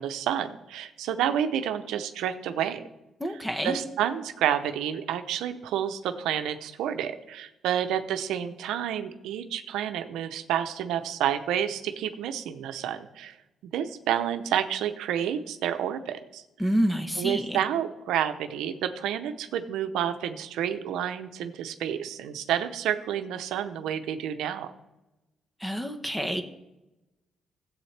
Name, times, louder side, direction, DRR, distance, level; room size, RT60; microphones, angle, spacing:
voice 1, 0.0-2.8 3.6-13.4 13.7-16.4 17.2-24.7, right 10 dB, 90° right, 8 dB, 0.7 m, -29 dB
voice 2, 3.2-3.8 16.6-17.6 25.6-26.4, equal, 5° left, 7 dB, 1.0 m, -28 dB
14.5 x 8.0 x 3.3 m, 0.98 s
cardioid pair, 90°, 0 cm